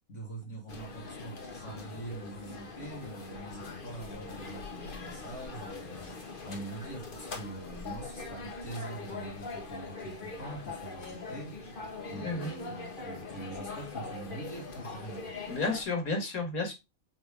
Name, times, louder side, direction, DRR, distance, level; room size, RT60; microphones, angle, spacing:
voice 1, 0.1-6.2 6.4-11.6 12.1-15.3, right 2 dB, 60° left, 2.3 m, -44 dB
sound 1, 0.7-15.8, left 3 dB, 40° left, 1.3 m, -42 dB
voice 2, 12.1-12.5 15.5-16.7, left 3 dB, 85° left, 2.5 m, -32 dB
7.7 x 3.5 x 3.6 m
omnidirectional pair, 1.5 m